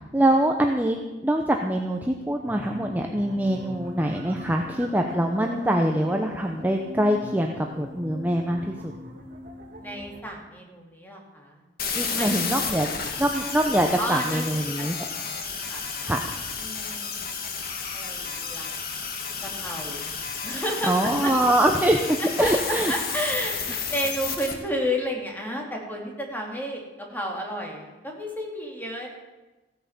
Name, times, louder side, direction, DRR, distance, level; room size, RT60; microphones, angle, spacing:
voice 1, 0.0-8.9 11.9-12.9 13.2-15.0 16.0-16.2 20.9-22.9, right 1 dB, 10° right, 2 dB, 0.8 m, -24 dB
sound 1, 2.4-10.2, left 1 dB, 50° right, 2.4 m, -41 dB
voice 2, 9.8-11.6 12.0-13.1 14.0-14.9 15.3-15.9 16.6-18.7 19.4-20.1 20.4-21.3 22.4-29.1, equal, 10° left, 0 dB, 2.7 m, -32 dB
sound 2, 11.8-24.5, left 5 dB, 55° left, 1.8 m, -32 dB
16.0 x 8.9 x 7.3 m, 1.1 s
head